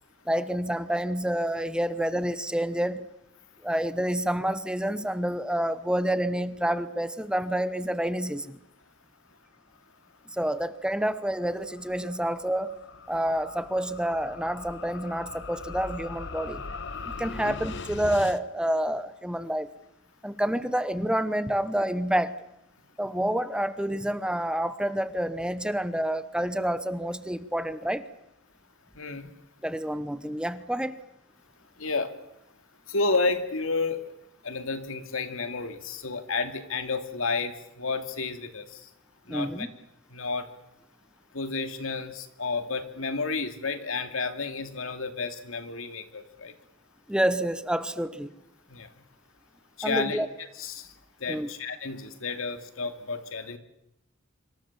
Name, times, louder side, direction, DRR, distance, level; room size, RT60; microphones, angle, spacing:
voice 1, 0.3-3.0 3.6-8.6 10.3-12.8 13.1-16.6 17.1-19.7 20.2-22.3 23.0-28.0 29.6-30.9 39.3-39.7 47.1-48.3 49.8-50.3 51.3-51.5, right 1 dB, 5° right, 12 dB, 1.0 m, -28 dB
sound 1, 10.6-18.4, left 4 dB, 60° left, 1.2 m, -41 dB
voice 2, 28.9-29.3 31.8-32.1 32.9-34.0 34.4-38.9 39.3-39.7 40.1-40.5 41.3-46.5 48.7-48.9 49.8-50.3 50.6-50.9 51.2-53.6, left 4 dB, 85° left, 8 dB, 2.5 m, -31 dB
26.0 x 25.0 x 7.3 m, 0.82 s
head